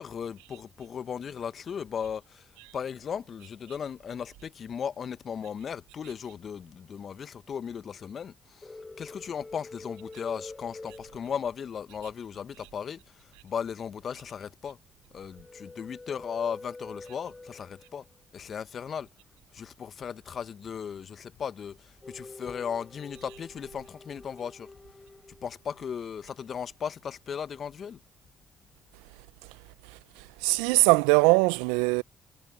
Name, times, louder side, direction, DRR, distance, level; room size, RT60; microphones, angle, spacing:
voice 1, 0.0-2.5 2.7-13.0 13.4-14.8 15.1-18.0 18.3-19.1 19.5-24.7 25.4-28.0, left 7 dB, 50° left, 1.6 m, -36 dB
sound 1, 8.6-11.8 15.3-17.9 22.0-25.8, left 3 dB, 25° left, 5.2 m, -46 dB
voice 2, 30.4-32.0, right 27 dB, 80° right, 0.6 m, -21 dB
hypercardioid pair, 45°, 0 cm